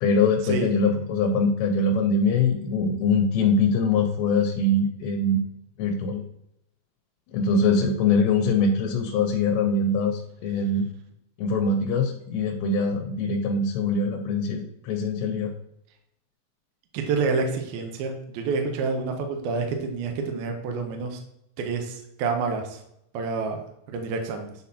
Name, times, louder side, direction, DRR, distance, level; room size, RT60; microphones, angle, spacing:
voice 1, 0.0-5.4 5.8-6.2 7.3-10.9 11.4-15.5, left 3 dB, 85° left, 3 dB, 3.0 m, -23 dB
voice 2, 16.9-21.2 21.6-22.8 23.1-24.5, right 4 dB, 75° right, 4 dB, 2.3 m, -28 dB
9.3 x 4.2 x 2.8 m, 0.79 s
omnidirectional pair, 5.0 m